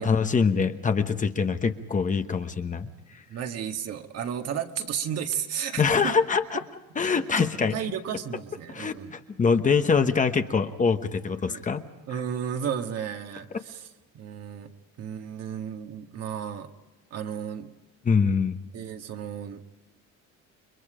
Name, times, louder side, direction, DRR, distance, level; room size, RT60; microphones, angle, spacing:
voice 1, 0.0-2.9 5.8-6.6 6.9-7.8 8.7-11.8 18.0-18.6, left 5 dB, 25° left, 8 dB, 1.2 m, -24 dB
voice 2, 3.3-6.2 7.1-9.2 11.5-11.6 12.1-13.9 14.1-14.7 15.0-16.7 17.1-17.7 18.7-19.6, right 8 dB, 50° right, 5 dB, 1.8 m, -33 dB
30.0 x 23.0 x 5.1 m, 1.1 s
cardioid pair, 150°, 31 cm